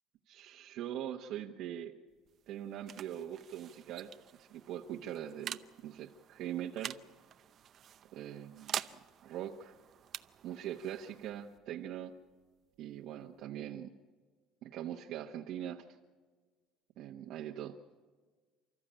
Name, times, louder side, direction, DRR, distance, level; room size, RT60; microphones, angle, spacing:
voice 1, 0.3-1.9 2.5-7.0 8.1-9.0 9.2-9.7 10.4-12.1 12.8-13.9 14.6-15.8 17.0-17.7, right 11 dB, 60° right, 1 dB, 1.2 m, -42 dB
sound 1, 2.1-13.4, right 9 dB, 40° right, 0.7 m, -47 dB
29.5 x 13.5 x 8.8 m, 1.4 s
cardioid pair, 140°, 0 cm